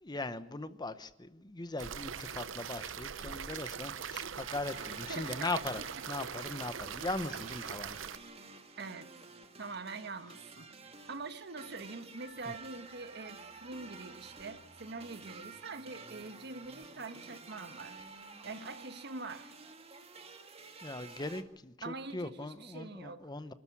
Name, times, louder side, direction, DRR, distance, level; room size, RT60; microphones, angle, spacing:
voice 1, 0.0-5.8 6.1-8.0 20.8-23.5, left 2 dB, 20° left, 12 dB, 0.9 m, -39 dB
sound 1, 1.8-8.2, right 8 dB, 75° right, 0.7 m, -42 dB
sound 2, 4.4-21.4, right 4 dB, 30° right, 1.8 m, -51 dB
voice 2, 5.1-5.5 6.2-6.3 8.8-9.1 9.6-10.7 11.1-18.0 18.4-19.5 21.8-23.3, right 3 dB, 60° right, 10 dB, 1.4 m, -44 dB
25.5 x 13.0 x 8.4 m, 0.96 s
head